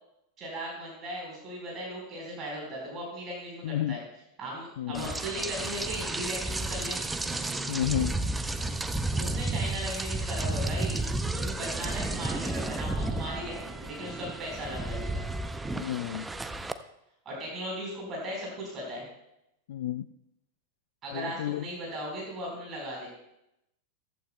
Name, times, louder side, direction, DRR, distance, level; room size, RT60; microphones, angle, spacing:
voice 1, 0.4-4.0 4.4-7.0 9.1-11.0 11.3-15.2 17.2-19.0 21.0-23.1, right 1 dB, 30° right, -3 dB, 4.2 m, -37 dB
voice 2, 3.6-4.0 4.8-5.1 7.7-8.2 15.7-16.3 19.7-20.1 21.1-21.7, left 12 dB, 55° left, 13 dB, 0.4 m, -31 dB
Rain, 4.9-16.7, right 2 dB, 10° right, 0.6 m, -32 dB
15.5 x 14.5 x 2.2 m, 0.83 s
figure-of-eight pair, 90°, 0 cm